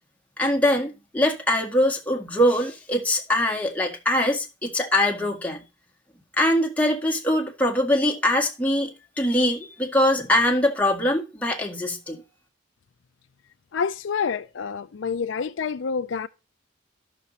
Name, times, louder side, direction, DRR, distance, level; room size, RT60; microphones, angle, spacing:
voice 1, 0.4-5.6 6.4-8.9 9.2-12.2, left 1 dB, 10° left, 1.8 m, -22 dB
voice 2, 13.7-16.3, left 6 dB, 70° left, 0.4 m, -28 dB
12.5 x 6.3 x 4.1 m
head